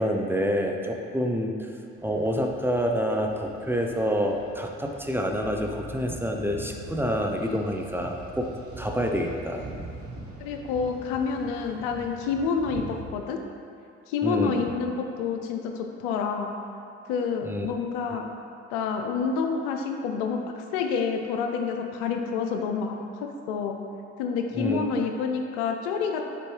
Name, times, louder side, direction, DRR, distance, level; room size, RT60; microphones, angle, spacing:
voice 1, 0.0-1.7 2.0-8.5 8.8-9.6 14.2-14.7 17.4-17.7 24.5-24.8, equal, 5° right, 2 dB, 0.7 m, -27 dB
sound 1, 2.0-13.0, right 2 dB, 45° right, 1.1 m, -43 dB
voice 2, 10.4-13.4 14.1-16.5 17.1-18.3 18.7-23.8 24.2-26.2, left 5 dB, 85° left, 4 dB, 0.5 m, -28 dB
6.8 x 4.4 x 3.2 m, 2.4 s
hypercardioid pair, 50°, 32 cm